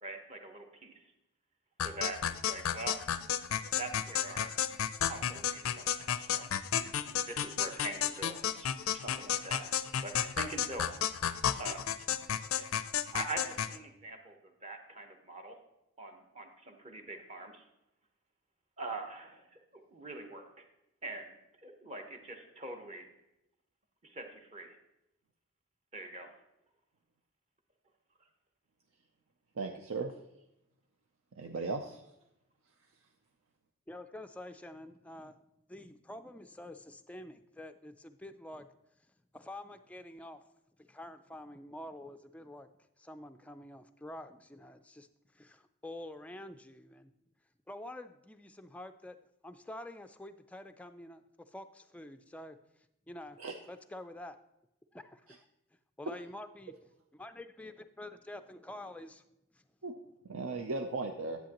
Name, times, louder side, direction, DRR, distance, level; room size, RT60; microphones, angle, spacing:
voice 1, 0.0-1.0 1.8-2.2 2.5-3.0 3.8-4.6 5.0-6.5 7.1-10.9 11.6-11.9 12.6-12.7 13.1-14.4 14.6-15.6 16.0-17.7 18.8-19.5 19.7-20.7 21.0-23.1 24.0-24.7 25.9-26.3, right 2 dB, 30° right, 4 dB, 1.0 m, -43 dB
sound 1, 1.8-13.8, left 9 dB, 80° left, 0.4 m, -33 dB
voice 2, 29.6-30.1 31.4-32.0 53.4-53.5 59.8-59.9 60.2-61.4, right 3 dB, 80° right, 4 dB, 0.6 m, -36 dB
voice 3, 33.9-35.4 35.7-38.7 39.3-40.4 40.9-42.7 43.0-45.1 45.3-47.1 47.7-49.2 49.4-52.6 53.1-53.4 53.7-54.4 54.9-55.4 56.0-59.2 59.5-59.6, left 1 dB, 5° left, 8 dB, 0.3 m, -47 dB
10.0 x 8.3 x 2.9 m, 0.87 s
head